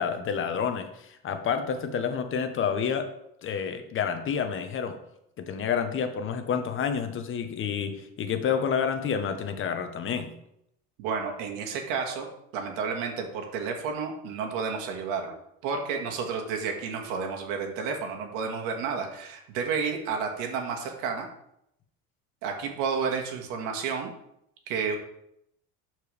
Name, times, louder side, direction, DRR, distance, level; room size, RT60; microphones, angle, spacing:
voice 1, 0.0-3.1 3.4-5.0 5.4-10.3, left 7 dB, 40° left, 7 dB, 1.0 m, -29 dB
voice 2, 11.0-12.3 12.5-15.3 15.6-21.3 22.4-24.1 24.7-25.0, right 5 dB, 75° right, 2 dB, 1.8 m, -31 dB
12.0 x 4.6 x 3.4 m, 0.78 s
supercardioid pair, 110°, 32 cm